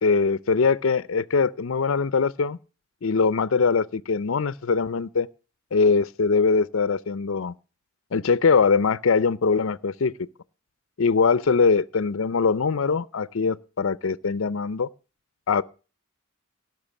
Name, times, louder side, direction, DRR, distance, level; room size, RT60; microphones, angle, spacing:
voice 1, 0.0-2.6 3.0-5.3 5.7-7.5 8.1-10.1 11.0-14.9 15.5-15.6, left 5 dB, 70° left, 0.5 m, -22 dB
17.5 x 6.1 x 7.1 m
head